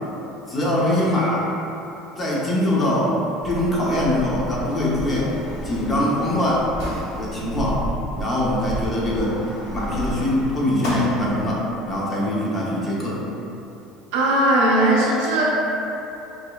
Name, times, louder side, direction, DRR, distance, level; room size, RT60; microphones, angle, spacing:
voice 1, 0.5-1.5 2.2-3.2 3.4-5.3 5.6-6.7 7.2-7.9 8.1-9.4 9.7-13.2, left 1 dB, 25° left, -6 dB, 0.8 m, -22 dB
Sliding door, 3.4-12.0, equal, 70° left, 0.9 m, -32 dB
voice 2, 14.1-15.4, right 1 dB, 85° right, -4 dB, 0.6 m, -18 dB
5.3 x 2.0 x 2.3 m, 3.0 s
supercardioid pair, 110°, 0 cm